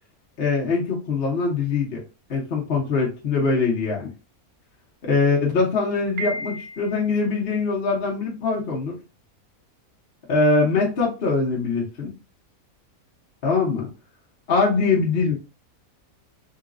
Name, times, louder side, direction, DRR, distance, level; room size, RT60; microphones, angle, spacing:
voice 1, 0.4-2.0 2.3-4.1 5.0-9.0 10.3-12.1 13.4-13.9 14.5-15.4, left 4 dB, 45° left, -3 dB, 1.0 m, -22 dB
Piano, 6.2-7.2, equal, 60° right, 0.5 m, -33 dB
3.9 x 2.3 x 2.5 m, 0.32 s
omnidirectional pair, 1.6 m